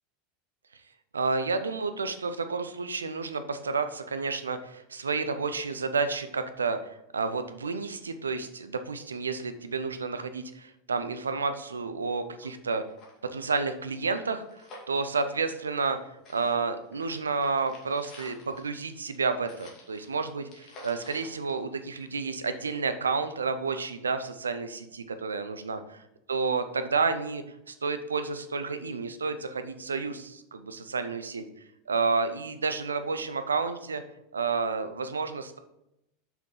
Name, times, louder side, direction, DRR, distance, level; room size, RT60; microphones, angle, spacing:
voice 1, 1.1-12.8 13.2-14.6 14.9-16.0 16.3-26.0 26.3-31.4 31.9-34.0 34.3-35.6, right 4 dB, 85° right, 10 dB, 0.6 m, -30 dB
sound 1, 12.1-12.2 12.4-12.5 12.8-16.0 16.2-22.3 22.7-22.8, left 2 dB, 45° left, 2.5 m, -51 dB
7.0 x 6.0 x 3.9 m, 0.82 s
figure-of-eight pair, 85°, 0 cm